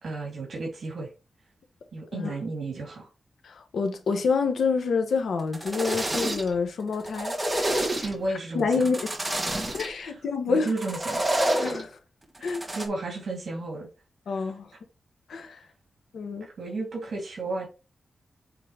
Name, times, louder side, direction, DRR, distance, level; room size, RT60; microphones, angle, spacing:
voice 1, 0.0-1.1 1.9-3.1 8.0-8.7 9.5-9.6 10.0-10.1 10.5-11.6 12.4-13.9 16.4-17.7, right 2 dB, 60° right, 3.3 m, -33 dB
voice 2, 3.4-8.1 8.5-9.1 9.7-10.7 11.6-12.0 12.4-12.6 14.3-14.7 15.3-15.6 16.1-16.5, left 4 dB, 85° left, 1.2 m, -28 dB
sound 1, 5.4-6.6 6.9-8.3 8.7-9.9 10.7-11.8 12.4-12.8, right 1 dB, 15° right, 1.6 m, -28 dB
8.4 x 3.9 x 3.6 m
wide cardioid pair, 145°, 0 cm